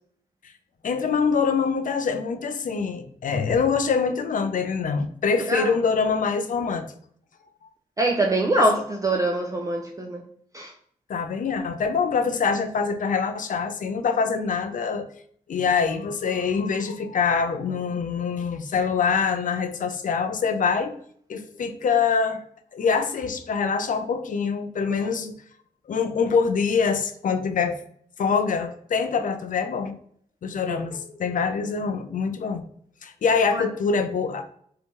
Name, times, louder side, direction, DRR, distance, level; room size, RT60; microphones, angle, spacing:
voice 1, 0.8-6.9 11.1-15.1 15.5-21.0 21.3-22.4 22.7-25.3 25.9-27.8 28.2-29.9 30.4-32.6 33.0-34.4, left 5 dB, 55° left, 0.4 m, -24 dB
voice 2, 8.0-10.2 10.5-10.7 24.9-25.0 30.7-30.9 33.5-33.6, right 1 dB, 20° right, 0.4 m, -24 dB
2.7 x 2.2 x 2.9 m
supercardioid pair, 40°, 16 cm